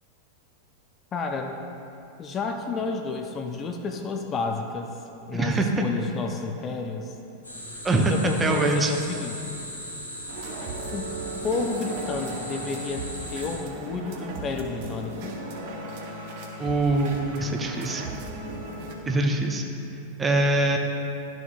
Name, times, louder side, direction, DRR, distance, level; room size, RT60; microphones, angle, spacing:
voice 1, 1.1-1.6 2.2-5.0 5.3-7.1 8.0-9.6 10.9-11.2 11.4-13.0 13.3-15.4, left 4 dB, 25° left, 4 dB, 0.5 m, -31 dB
voice 2, 5.3-5.8 7.8-8.9 16.6-18.1 19.1-20.8, right 2 dB, 15° right, 3 dB, 0.7 m, -24 dB
sound 1, 7.4-13.6, equal, 85° left, 1.6 m, -38 dB
sound 2, 10.3-18.9, right 2 dB, 50° right, 0.9 m, -36 dB
12.0 x 6.1 x 2.4 m, 2.8 s
figure-of-eight pair, 90°, 0 cm